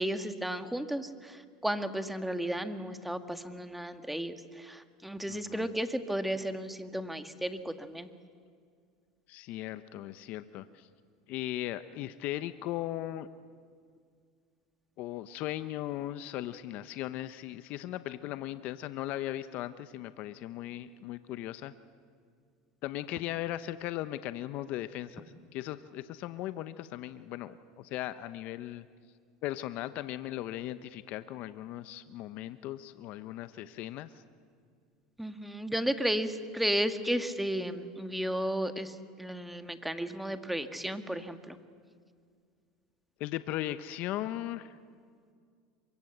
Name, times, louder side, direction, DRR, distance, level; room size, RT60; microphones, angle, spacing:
voice 1, 0.0-8.1 35.2-41.6, equal, 5° right, 8 dB, 1.8 m, -34 dB
voice 2, 5.3-5.7 9.3-10.9 11.3-13.3 15.0-21.7 22.8-28.9 29.4-34.2 43.2-44.7, left 14 dB, 55° left, 12 dB, 0.9 m, -38 dB
27.0 x 24.0 x 8.0 m, 2.1 s
supercardioid pair, 105°, 3 cm